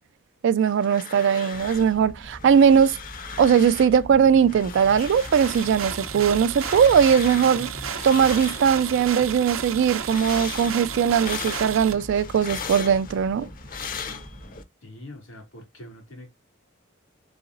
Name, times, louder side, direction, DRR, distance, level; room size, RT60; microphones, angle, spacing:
voice 1, 0.4-3.0 3.4-7.7 8.0-13.5, right 7 dB, 65° right, 0.3 m, -20 dB
sound 1, 0.6-2.0 2.2-4.0 4.4-9.1 9.5-14.6, left 6 dB, 45° left, 0.5 m, -38 dB
sound 2, 1.5-14.6, equal, 10° right, 0.5 m, -42 dB
sound 3, 5.0-11.9, right 7 dB, 85° right, 0.7 m, -33 dB
voice 2, 14.8-16.3, left 1 dB, 85° left, 2.3 m, -43 dB
4.0 x 3.9 x 2.5 m
head